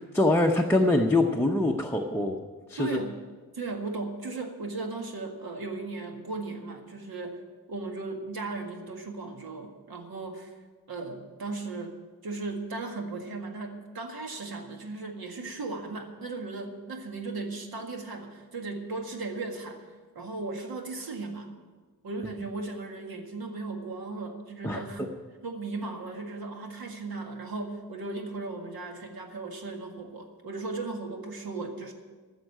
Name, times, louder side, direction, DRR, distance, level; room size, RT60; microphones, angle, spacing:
voice 1, 0.0-2.4 2.7-3.0 24.6-24.8, left 2 dB, 5° left, 2 dB, 0.6 m, -24 dB
voice 2, 2.8-3.2 3.5-7.4 7.7-10.5 10.9-21.5 22.0-25.0 25.4-31.9, right 3 dB, 80° right, 3 dB, 1.9 m, -36 dB
14.5 x 6.5 x 9.0 m, 1.4 s
wide cardioid pair, 170°, 36 cm